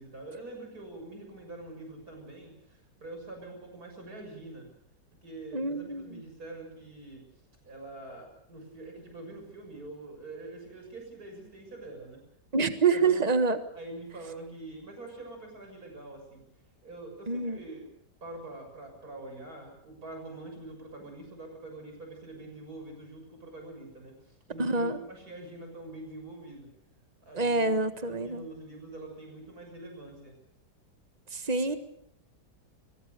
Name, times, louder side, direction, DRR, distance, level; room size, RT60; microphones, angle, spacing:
voice 1, 0.0-4.7 5.2-7.2 7.6-12.2 12.5-13.2 13.7-16.4 16.8-17.8 18.2-26.7 27.2-27.7 28.0-30.4, right 2 dB, 60° right, 3 dB, 7.4 m, -44 dB
voice 2, 5.5-6.2 12.5-13.6 17.3-17.6 24.6-25.0 27.3-28.5 31.3-31.8, right 4 dB, 25° right, 10 dB, 1.5 m, -26 dB
23.5 x 22.0 x 6.8 m, 0.71 s
omnidirectional pair, 1.8 m